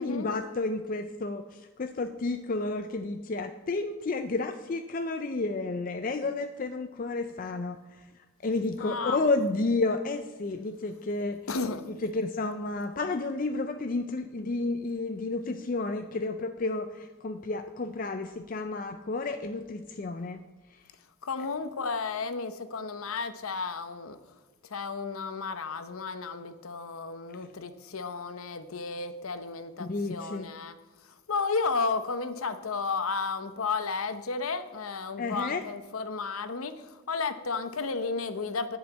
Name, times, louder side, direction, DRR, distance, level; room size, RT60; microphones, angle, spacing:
voice 1, 0.0-8.0 8.4-11.4 12.0-20.4 20.7-20.8 29.8-30.5 35.2-35.6, left 3 dB, 40° left, 7 dB, 0.4 m, -31 dB
voice 2, 8.8-9.2 11.5-11.9 21.2-24.2 24.7-30.8 31.3-38.8, left 4 dB, 85° left, 11 dB, 0.8 m, -33 dB
10.5 x 5.6 x 8.3 m, 1.2 s
head